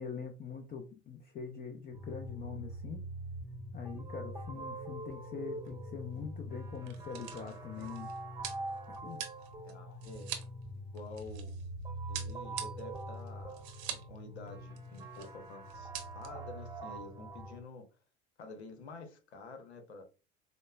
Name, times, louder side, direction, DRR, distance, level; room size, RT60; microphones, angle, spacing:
voice 1, 0.0-3.0 3.7-8.1 9.0-9.2, left 6 dB, 30° left, 0.6 m, -43 dB
sound 1, 1.9-17.6, right 1 dB, 10° right, 0.9 m, -44 dB
sound 2, 5.1-5.4 5.7-5.8 6.6-11.7 12.1-14.2 14.5-14.6 14.8-15.3 15.7-16.3, right 10 dB, 55° right, 0.8 m, -44 dB
voice 2, 9.6-10.4 10.7-11.6 12.1-13.6 13.9-17.9 18.4-20.0, left 3 dB, 80° left, 0.9 m, -49 dB
5.0 x 2.1 x 2.2 m
figure-of-eight pair, 70°, 33 cm